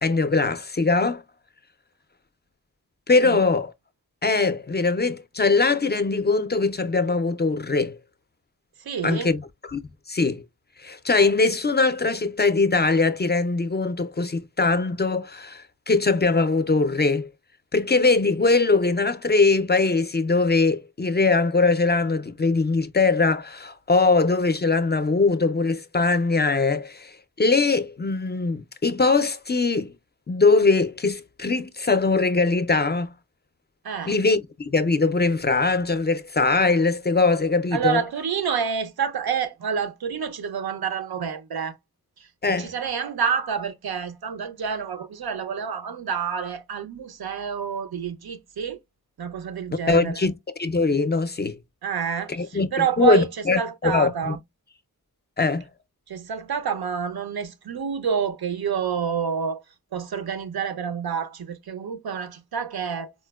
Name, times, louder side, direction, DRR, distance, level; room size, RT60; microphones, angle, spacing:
voice 1, 0.0-1.2 3.1-3.7 4.2-8.0 9.0-9.4 9.7-9.8 10.1-10.4 10.8-17.3 17.7-29.9 30.3-33.1 34.1-38.0 42.4-42.7 49.9-51.6 52.3-54.4 55.4-55.6, left 3 dB, 30° left, 0.3 m, -21 dB
voice 2, 8.8-9.3 33.8-34.2 37.7-41.8 42.2-48.8 49.2-50.2 51.8-53.3 53.6-54.4 56.1-59.6 59.9-63.1, right 7 dB, 85° right, 0.5 m, -28 dB
4.2 x 2.1 x 2.2 m
wide cardioid pair, 70°, 36 cm